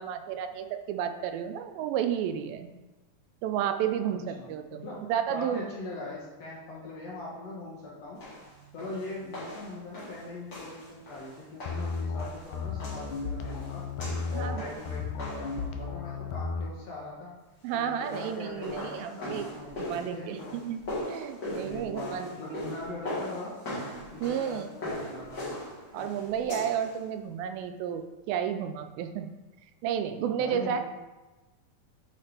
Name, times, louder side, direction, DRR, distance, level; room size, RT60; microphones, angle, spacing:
voice 1, 0.0-2.7 3.4-5.6 14.3-14.7 17.6-19.5 19.8-20.8 21.1-22.6 24.2-24.7 25.9-29.3 29.8-30.8, right 9 dB, 85° right, 7 dB, 2.3 m, -32 dB
voice 2, 4.0-8.3 8.7-13.9 14.3-17.4 17.7-20.6 21.6-23.6 24.1-25.5 30.3-30.8, left 2 dB, 65° left, -5 dB, 1.8 m, -41 dB
sound 1, 8.2-15.6 17.8-27.0, left 1 dB, 30° left, 2.2 m, -40 dB
sound 2, 11.6-16.7, left 4 dB, 85° left, 1.6 m, -34 dB
8.5 x 5.8 x 3.4 m, 1.1 s
omnidirectional pair, 4.2 m